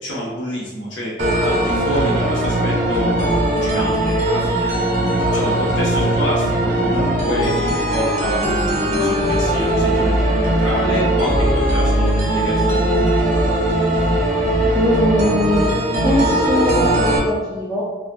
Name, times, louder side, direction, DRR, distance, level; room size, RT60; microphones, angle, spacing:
voice 1, 0.0-4.7 5.3-13.0, equal, 90° left, -5 dB, 0.9 m, -27 dB
sound 1, 1.2-17.2, right 1 dB, 40° right, 0.7 m, -19 dB
voice 2, 14.7-15.7 16.0-17.8, equal, 5° left, -8 dB, 0.4 m, -20 dB
3.9 x 2.4 x 2.2 m, 1.2 s
head